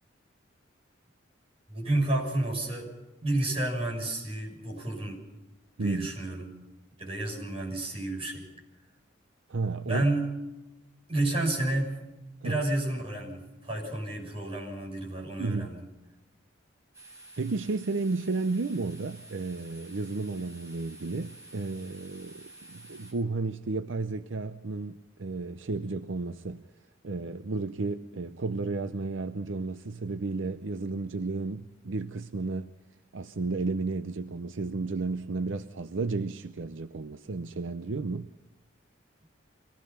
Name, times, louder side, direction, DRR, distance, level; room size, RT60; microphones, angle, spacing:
voice 1, 1.7-2.9 3.2-5.2 5.8-6.5 7.0-8.5 9.9-10.3 11.1-12.0 12.4-15.8, right 2 dB, 30° right, 6.7 m, -30 dB
voice 2, 5.8-6.1 9.5-10.0 12.4-12.6 15.4-15.7 17.4-26.6 27.0-32.7 33.1-38.3, right 3 dB, 70° right, 0.6 m, -32 dB
sound 1, 16.9-23.1, right 2 dB, 15° right, 6.7 m, -50 dB
25.0 x 18.0 x 5.8 m
head